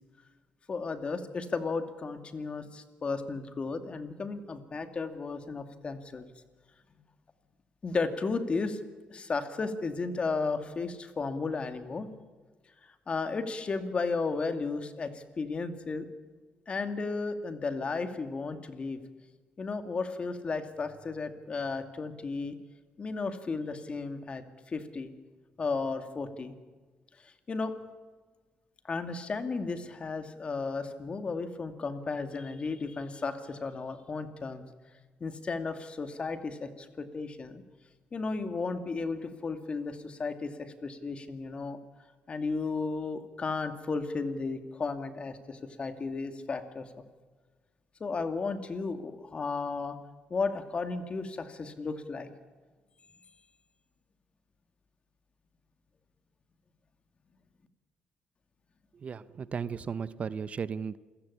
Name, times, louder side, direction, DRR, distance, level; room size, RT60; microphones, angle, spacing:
voice 1, 0.7-6.3 6.9-7.0 7.8-8.8 9.1-12.1 13.1-16.1 16.7-19.0 19.6-22.6 23.0-25.1 25.6-26.5 27.5-27.7 28.8-34.6 35.2-37.6 38.1-41.8 42.3-46.9 48.0-50.0 50.3-52.3, left 4 dB, 35° left, 8 dB, 2.4 m, -34 dB
voice 2, 58.9-61.0, right 6 dB, 45° right, 16 dB, 0.7 m, -35 dB
28.0 x 16.0 x 8.7 m, 1.4 s
cardioid pair, 90°, 3 cm